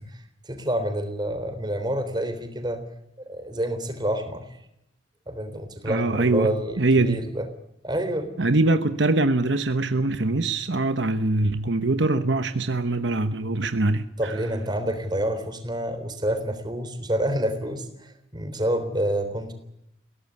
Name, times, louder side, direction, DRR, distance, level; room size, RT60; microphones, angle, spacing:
voice 1, 0.0-2.8 3.2-4.5 5.3-7.5 7.8-8.3 14.2-19.5, right 1 dB, 25° right, 3.7 m, -28 dB
voice 2, 5.8-7.3 8.4-14.3, right 2 dB, 70° right, 1.1 m, -23 dB
21.0 x 17.5 x 9.8 m
head